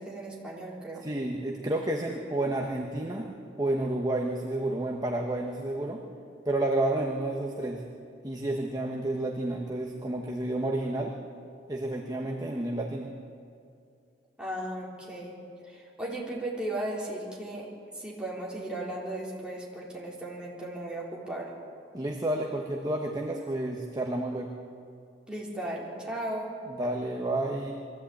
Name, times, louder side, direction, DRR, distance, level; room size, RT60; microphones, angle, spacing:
voice 1, 0.0-1.0 14.4-15.3 15.6-17.7 17.9-21.5 25.3-26.5, right 1 dB, 5° right, -5 dB, 3.8 m, -36 dB
voice 2, 1.0-3.3 3.6-6.0 6.4-7.8 8.2-11.1 11.7-13.1 21.9-24.5 26.7-27.7, right 1 dB, 20° right, 1 dB, 1.2 m, -30 dB
22.5 x 14.5 x 8.6 m, 2.5 s
head